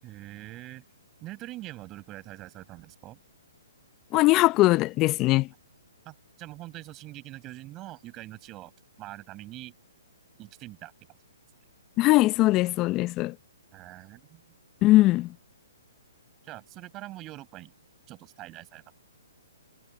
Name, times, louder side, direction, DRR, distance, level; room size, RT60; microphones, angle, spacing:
voice 1, 0.0-0.8 1.2-3.2 6.0-8.7 9.0-9.7 10.4-11.2 13.7-14.4 16.4-17.7 18.1-19.0, right 17 dB, 25° right, 6.1 m, -43 dB
voice 2, 4.1-5.5 12.0-13.3 14.8-15.3, left 18 dB, 25° left, 0.7 m, -20 dB
hypercardioid pair, 135°, 0 cm